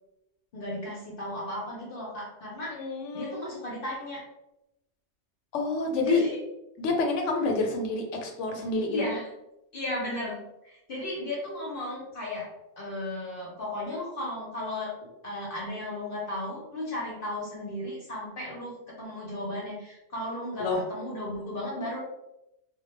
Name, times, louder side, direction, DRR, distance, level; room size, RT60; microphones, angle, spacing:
voice 1, 0.5-2.8 3.1-4.2 6.0-6.4 8.9-9.3 9.7-12.5 12.8-22.0, left 1 dB, 55° left, -4 dB, 0.7 m, -35 dB
voice 2, 2.8-3.4 5.5-6.2 6.8-9.0 20.6-20.8, left 3 dB, 80° left, 2 dB, 0.9 m, -28 dB
2.1 x 2.1 x 3.0 m, 0.89 s
omnidirectional pair, 1.2 m